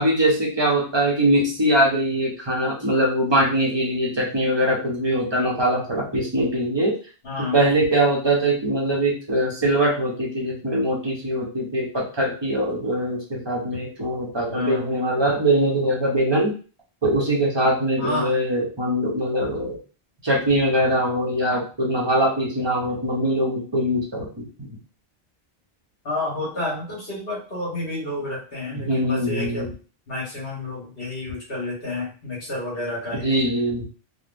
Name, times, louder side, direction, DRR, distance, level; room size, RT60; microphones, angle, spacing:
voice 1, 0.0-6.9 7.4-16.5 17.0-19.8 20.2-24.8 28.7-29.7 33.2-33.9, right 1 dB, 30° right, -3 dB, 0.7 m, -22 dB
voice 2, 7.2-7.6 14.5-14.9 18.0-18.3 26.0-29.7 30.1-33.3, left 2 dB, 65° left, -5 dB, 1.7 m, -30 dB
3.3 x 2.3 x 2.5 m, 0.37 s
omnidirectional pair, 1.1 m